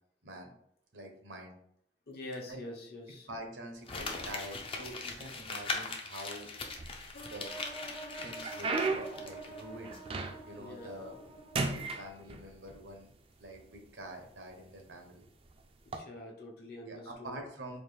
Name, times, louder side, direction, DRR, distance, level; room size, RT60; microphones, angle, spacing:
voice 1, 0.9-1.5 2.4-2.6 3.3-6.5 7.2-7.5 8.2-10.0 10.4-11.1 11.6-13.1 13.4-15.2 16.8-17.8, right 1 dB, 85° right, 3 dB, 0.9 m, -46 dB
voice 2, 2.1-3.3 10.6-11.3 15.8-17.4, left 1 dB, 60° left, -1 dB, 1.0 m, -46 dB
Crumpling crinkling, 3.9-9.6 9.9-10.0, left 3 dB, 30° left, 0.5 m, -40 dB
sound 1, 6.7-7.4 7.9-10.7 11.0-11.3 11.5-12.8 13.6-13.7 14.4-14.6 15.8-16.0, right 3 dB, 30° right, 0.4 m, -35 dB
sound 2, 7.1-12.0, right 3 dB, 85° left, 0.9 m, -48 dB
4.3 x 2.5 x 3.3 m, 0.70 s
head